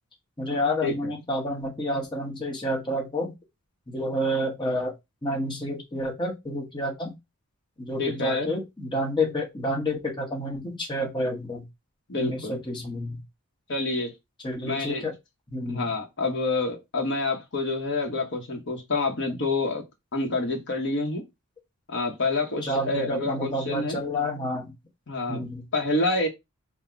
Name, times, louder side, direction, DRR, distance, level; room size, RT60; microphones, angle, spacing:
voice 1, 0.4-3.3 3.9-4.9 5.2-7.1 7.8-11.6 12.1-13.2 14.4-15.1 15.5-15.9 22.6-24.7 25.3-25.6, left 1 dB, 20° left, 1.0 m, -29 dB
voice 2, 8.0-8.5 12.1-12.6 13.7-14.1 14.7-15.0 15.7-19.8 20.1-21.2 21.9-24.0 25.1-25.4 25.7-26.3, left 3 dB, 50° left, 0.9 m, -27 dB
3.9 x 2.1 x 4.4 m
head